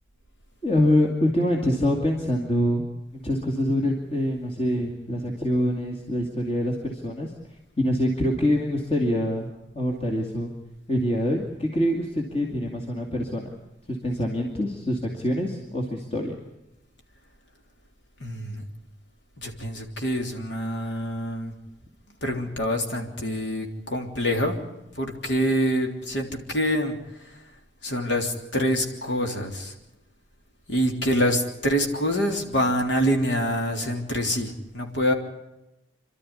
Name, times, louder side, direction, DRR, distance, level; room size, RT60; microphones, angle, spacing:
voice 1, 0.6-2.8 3.2-7.3 7.8-9.5 9.7-10.5 10.9-13.5 13.9-16.4, left 1 dB, 35° left, 1 dB, 2.4 m, -25 dB
voice 2, 18.2-18.6 19.4-21.5 22.2-24.6 25.0-26.9 27.8-29.7 30.7-35.1, equal, 85° left, 3 dB, 3.4 m, -26 dB
28.0 x 12.5 x 9.8 m, 0.95 s
head